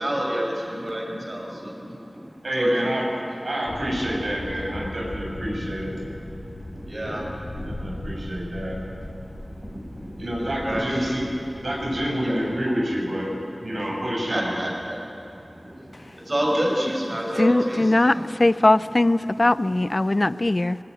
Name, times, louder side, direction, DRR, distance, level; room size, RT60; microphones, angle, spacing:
voice 1, 0.0-2.0 2.5-2.9 6.7-8.1 9.6-10.3 10.6-11.2 12.2-12.4 14.3-15.0 15.7-15.9 16.2-18.3 18.8-18.9, equal, 45° right, -1 dB, 6.1 m, -28 dB
voice 2, 2.4-3.0 3.4-5.9 7.6-8.8 10.2-11.3 11.6-13.3 13.6-14.6 17.6-17.7, equal, 75° right, -2 dB, 6.2 m, -28 dB
sound 1, 3.7-12.1, left 1 dB, 90° left, 4.3 m, -38 dB
voice 3, 17.4-20.8, left 2 dB, 45° left, 16 dB, 0.5 m, -20 dB
20.0 x 18.5 x 9.3 m, 2.9 s
wide cardioid pair, 55°, 0 cm